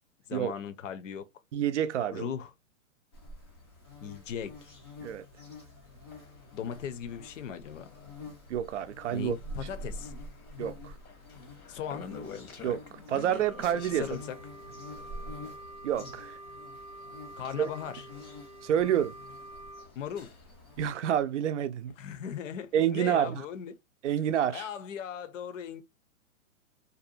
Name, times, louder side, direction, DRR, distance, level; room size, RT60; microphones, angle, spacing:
voice 1, 0.3-1.2 2.1-2.5 4.0-4.7 6.5-7.9 9.1-10.1 11.7-12.1 13.9-14.4 17.4-18.1 20.0-20.3 22.0-23.7 24.5-25.8, left 8 dB, 60° left, 0.6 m, -38 dB
voice 2, 1.5-2.3 5.0-5.2 8.5-9.4 10.6-10.9 12.6-12.8 13.1-14.1 15.8-16.4 17.6-17.7 18.6-19.1 20.8-21.9 22.7-23.4 24.0-24.7, right 10 dB, 60° right, 0.5 m, -28 dB
sound 1, 3.1-20.9, left 1 dB, 20° left, 0.4 m, -47 dB
sound 2, 6.1-20.7 21.9-23.0 23.4-23.5, left 6 dB, 90° left, 1.1 m, -51 dB
Wind instrument woodwind instrument, 13.2-19.9, right 1 dB, 15° right, 0.7 m, -47 dB
2.6 x 2.2 x 2.6 m
hypercardioid pair, 145°, 42 cm